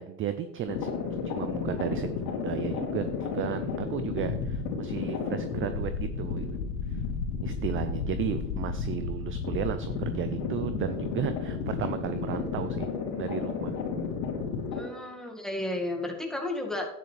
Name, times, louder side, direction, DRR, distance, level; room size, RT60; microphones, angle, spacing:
voice 1, 0.0-6.5 6.9-7.0 7.4-12.9 13.1-13.7, right 10 dB, 25° right, 11 dB, 0.5 m, -34 dB
sound 1, 0.7-14.8, left 5 dB, 65° left, 3.2 m, -32 dB
voice 2, 14.7-16.9, left 1 dB, ahead, 1 dB, 2.0 m, -33 dB
12.0 x 9.7 x 3.4 m, 0.89 s
hypercardioid pair, 100°, 49 cm